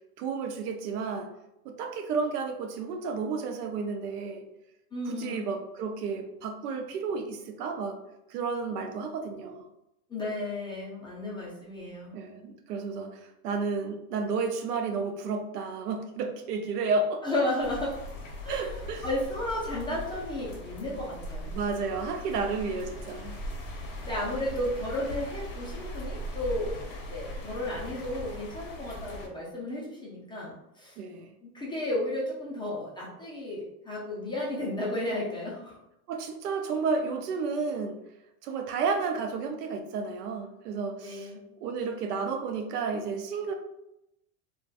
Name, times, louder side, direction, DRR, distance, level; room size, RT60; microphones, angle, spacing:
voice 1, 0.2-1.3 1.6-4.4 5.1-8.0 8.3-9.7 12.1-17.2 18.5-19.0 21.5-23.4 31.0-31.3 36.1-38.0 38.4-41.3 41.6-43.5, right 4 dB, 80° right, 5 dB, 0.6 m, -32 dB
voice 2, 4.9-5.4 10.1-12.1 17.2-17.9 18.4-18.8 19.0-21.6 24.0-26.8 27.1-31.0 31.4-35.8 41.0-41.4, left 1 dB, 10° left, -6 dB, 0.4 m, -33 dB
sound 1, 17.6-29.3, equal, 40° left, 0.7 m, -39 dB
2.4 x 2.3 x 2.3 m, 0.86 s
hypercardioid pair, 110°, 46 cm